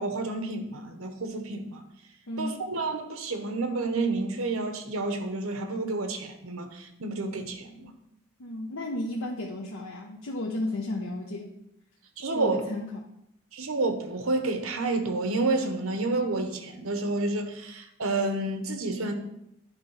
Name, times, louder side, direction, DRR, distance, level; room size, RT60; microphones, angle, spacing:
voice 1, 0.0-1.8 2.4-7.9 12.2-12.6 13.5-19.1, right 2 dB, 85° right, 7 dB, 1.1 m, -30 dB
voice 2, 2.3-2.6 8.4-11.6 12.3-13.0, left 1 dB, 90° left, 0 dB, 0.8 m, -33 dB
9.6 x 4.1 x 5.6 m, 0.80 s
head